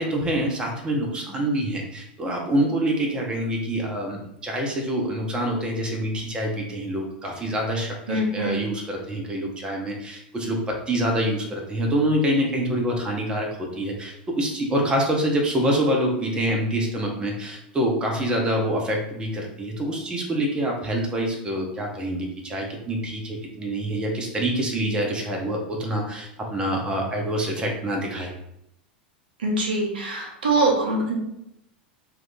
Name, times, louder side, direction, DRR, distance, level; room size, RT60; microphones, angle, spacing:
voice 1, 0.0-28.3, right 1 dB, 15° right, 0 dB, 0.7 m, -26 dB
voice 2, 8.1-8.6 29.4-31.2, right 2 dB, 70° right, 0 dB, 0.8 m, -23 dB
2.8 x 2.5 x 3.6 m, 0.80 s
figure-of-eight pair, 85°, 5 cm